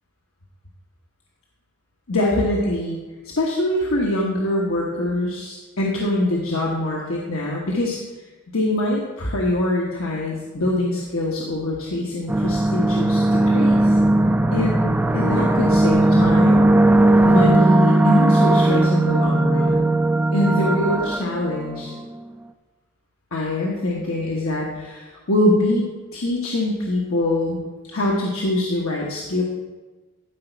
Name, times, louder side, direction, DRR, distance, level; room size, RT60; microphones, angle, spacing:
voice 1, 2.1-3.0 3.2-8.0 8.5-13.9 14.5-16.7 17.2-20.0 20.3-21.9 23.3-25.8 26.1-27.6 27.9-29.4, left 1 dB, 80° left, -3 dB, 1.2 m, -23 dB
sound 1, 12.3-22.0, right 1 dB, 10° right, 0.3 m, -18 dB
12.5 x 5.0 x 4.5 m, 1.3 s
head